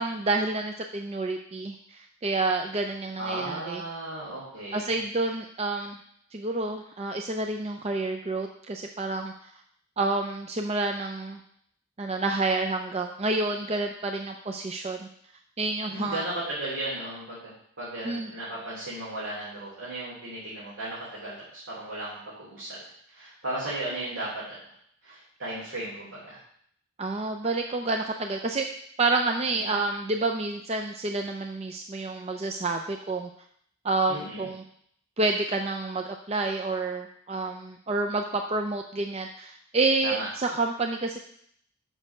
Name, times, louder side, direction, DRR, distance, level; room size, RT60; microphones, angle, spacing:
voice 1, 0.0-3.8 4.7-6.0 6.3-9.5 10.0-11.4 12.0-15.1 15.6-16.2 18.0-18.3 27.0-28.7 29.0-33.3 33.8-34.6 35.2-41.2, right 3 dB, 30° right, 4 dB, 0.5 m, -29 dB
voice 2, 3.2-4.9 15.9-21.3 21.7-22.8 23.1-24.6 25.0-26.4 29.5-29.7 34.1-34.5 40.0-40.3, right 1 dB, 70° right, -8 dB, 3.1 m, -35 dB
6.5 x 6.0 x 6.6 m, 0.67 s
head